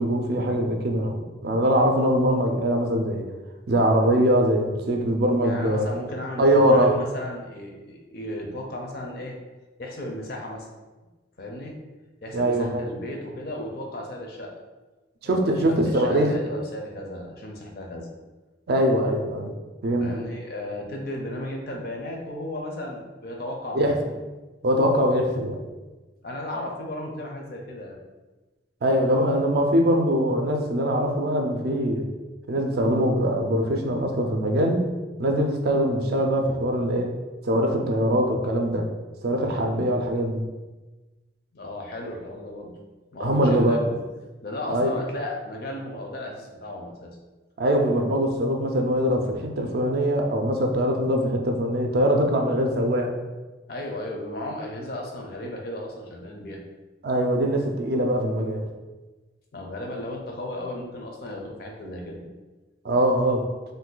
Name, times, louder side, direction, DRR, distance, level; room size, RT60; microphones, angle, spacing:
voice 1, 0.0-3.3 3.7-5.9 6.4-7.0 12.3-12.8 15.2-16.3 18.7-19.5 19.8-20.1 23.7-23.9 24.6-25.6 28.8-32.1 32.5-34.9 35.2-37.1 37.4-38.9 39.2-40.4 43.2-43.8 44.7-44.9 47.6-53.2 57.0-58.7 62.8-63.5, equal, 55° right, 3 dB, 0.4 m, -22 dB
voice 2, 5.4-9.3 9.8-10.7 11.4-11.7 12.2-14.5 15.2-18.1 19.9-24.0 26.2-28.0 41.5-42.7 43.1-44.0 44.4-47.2 53.7-56.6 59.5-62.2, left 1 dB, 55° left, 1 dB, 0.5 m, -35 dB
2.6 x 2.2 x 3.7 m, 1.2 s
head